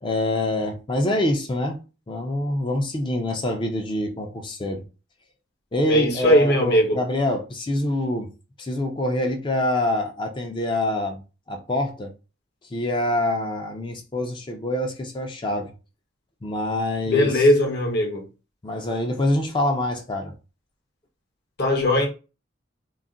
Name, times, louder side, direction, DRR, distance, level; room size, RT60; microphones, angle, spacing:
voice 1, 0.0-1.8 2.1-4.8 5.7-8.3 8.6-11.2 11.5-12.1 12.7-15.7 16.4-17.4 18.6-20.4, left 1 dB, 25° left, 0.4 m, -25 dB
voice 2, 5.9-7.0 17.1-18.3 21.6-22.1, equal, 55° left, 0.7 m, -19 dB
2.3 x 2.1 x 3.7 m
head